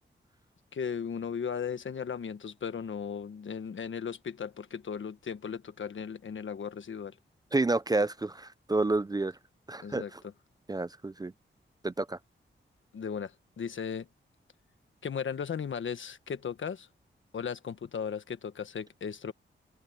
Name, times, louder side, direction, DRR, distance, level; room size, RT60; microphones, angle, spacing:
voice 1, 0.7-7.2 9.8-10.1 12.9-14.1 15.0-16.9 17.3-19.3, left 7 dB, 70° left, 1.4 m, -36 dB
voice 2, 7.5-9.3 9.7-10.2 10.7-11.3 11.8-12.2, right 2 dB, 20° right, 0.4 m, -29 dB
open air
wide cardioid pair, 115°, 21 cm